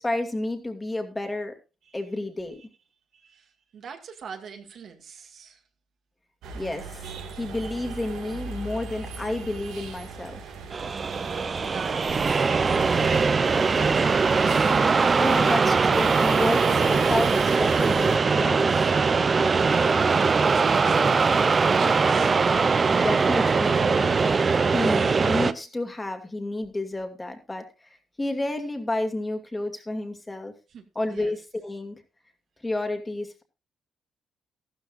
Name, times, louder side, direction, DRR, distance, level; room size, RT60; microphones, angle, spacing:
voice 1, 0.0-1.5 1.9-2.6 6.5-10.4 15.2-18.7 22.9-24.3 24.7-27.6 28.2-30.5 31.0-32.0 32.6-33.4, left 2 dB, 15° left, 2.3 m, -30 dB
voice 2, 3.1-5.6 11.1-14.2 19.3-22.4 30.7-31.4, right 6 dB, 60° right, 2.1 m, -43 dB
sound 1, 6.4-18.2, right 5 dB, 85° right, 2.2 m, -37 dB
sound 2, 10.7-25.5, right 4 dB, 35° right, 0.7 m, -21 dB
14.0 x 12.5 x 2.5 m
cardioid pair, 90°, 0 cm